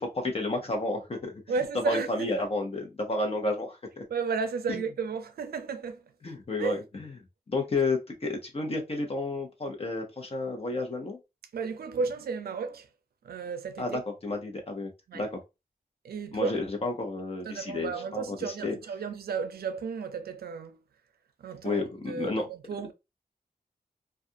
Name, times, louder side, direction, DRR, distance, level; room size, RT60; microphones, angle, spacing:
voice 1, 0.1-1.4 1.7-4.0 4.7-4.8 6.2-7.1 7.5-11.2 13.8-15.4 16.3-18.7 21.6-22.5, left 2 dB, 40° left, 0.8 m, -31 dB
voice 2, 1.5-2.3 4.1-6.0 6.6-6.8 11.5-12.9 13.2-14.0 15.1-15.2 16.0-16.6 17.4-20.8 21.4-22.9, right 5 dB, 90° right, 0.4 m, -33 dB
2.4 x 2.3 x 2.7 m
wide cardioid pair, 105°, 16 cm